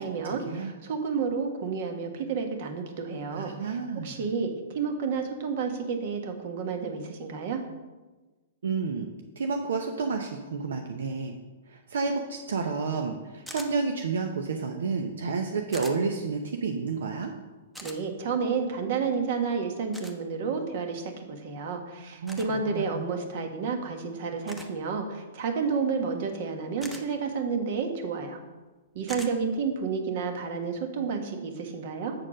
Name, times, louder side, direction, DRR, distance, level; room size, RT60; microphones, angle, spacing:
voice 1, 0.0-3.8 4.0-7.6 17.8-28.4 28.9-32.1, right 5 dB, 55° right, 5 dB, 1.3 m, -30 dB
voice 2, 3.3-4.3 8.6-9.1 9.4-11.3 11.7-17.3 22.2-23.0, right 4 dB, 80° right, 4 dB, 0.7 m, -30 dB
sound 1, 13.5-13.7 15.7-16.0 17.7-18.0 19.9-20.2 22.3-22.5 24.5-24.7 26.8-27.0 29.1-29.3, equal, 5° right, 0.8 m, -41 dB
7.7 x 4.4 x 6.2 m, 1.2 s
hypercardioid pair, 135°, 0 cm